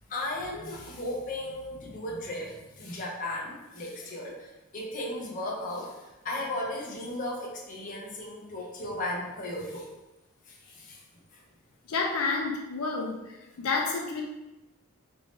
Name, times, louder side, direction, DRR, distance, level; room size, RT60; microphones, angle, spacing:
voice 1, 0.1-9.9 10.5-11.0 11.3-11.4 13.6-13.7, left 1 dB, 35° left, -3 dB, 0.6 m, -36 dB
voice 2, 11.9-14.2, left 4 dB, 85° left, 0 dB, 0.5 m, -30 dB
3.4 x 2.6 x 3.1 m, 1.0 s
head